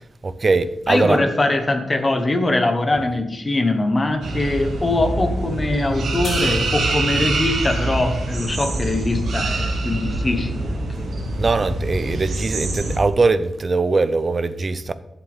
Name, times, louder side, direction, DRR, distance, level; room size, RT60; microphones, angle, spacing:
voice 1, 0.2-1.2 11.4-14.9, right 3 dB, 35° right, 0.5 m, -21 dB
voice 2, 0.9-11.1, left 2 dB, 25° left, 1.1 m, -22 dB
sound 1, 4.2-13.0, right 2 dB, 75° right, 2.0 m, -25 dB
sound 2, 6.2-9.5, left 3 dB, 45° left, 1.4 m, -40 dB
11.0 x 7.5 x 3.6 m
wide cardioid pair, 135°, 0 cm